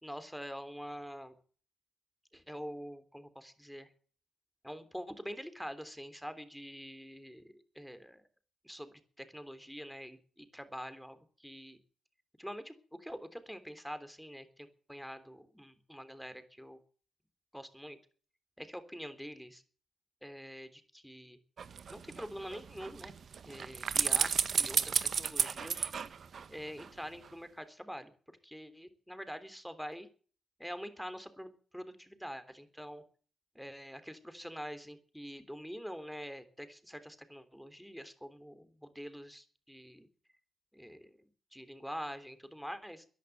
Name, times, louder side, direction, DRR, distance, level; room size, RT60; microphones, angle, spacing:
voice 1, 0.0-1.3 2.3-3.9 4.6-8.2 8.6-11.8 12.4-12.7 13.0-16.8 17.5-18.0 18.6-19.6 20.2-21.4 21.9-23.1 23.4-24.3 24.6-25.8 26.5-30.1 30.6-33.0 33.5-40.1 40.7-41.2 41.5-43.1, equal, ahead, 10 dB, 3.3 m, -45 dB
sound 1, 21.6-26.9 27.2-27.3, right 6 dB, 60° right, 1.3 m, -33 dB
14.5 x 10.5 x 8.0 m, 0.41 s
cardioid pair, 65°, 0 cm